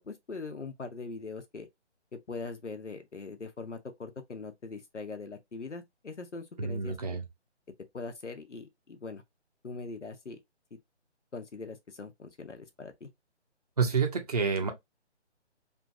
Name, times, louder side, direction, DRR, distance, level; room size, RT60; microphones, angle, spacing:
voice 1, 0.0-1.7 2.1-7.2 7.9-9.2 9.6-10.4 10.7-10.8 11.3-13.1, left 3 dB, 85° left, 0.8 m, -41 dB
voice 2, 6.6-7.2 13.8-14.7, right 5 dB, 35° right, 0.5 m, -28 dB
2.9 x 2.5 x 2.3 m
figure-of-eight pair, 145°, 35 cm